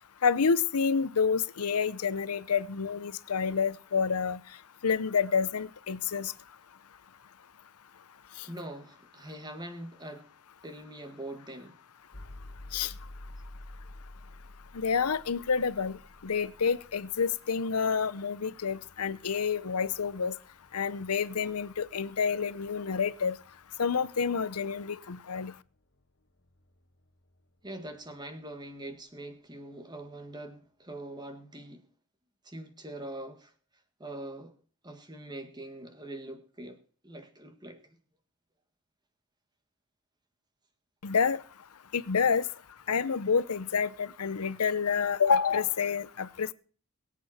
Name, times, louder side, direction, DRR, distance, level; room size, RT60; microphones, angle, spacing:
voice 1, 0.2-4.4 4.8-6.3 12.7-12.9 14.7-16.0 16.2-20.3 20.7-23.4 23.8-25.5 41.0-41.4 41.9-42.4 42.9-46.5, left 6 dB, 90° left, 16 dB, 0.8 m, -28 dB
voice 2, 8.5-10.3 10.6-11.8 27.6-31.8 32.4-33.5 34.0-34.5 34.8-37.8, right 1 dB, 20° right, 7 dB, 1.7 m, -43 dB
Wrap it up (Break point only), 12.1-28.1, left 1 dB, 55° left, 1.5 m, -52 dB
22.5 x 8.4 x 4.3 m, 0.41 s
head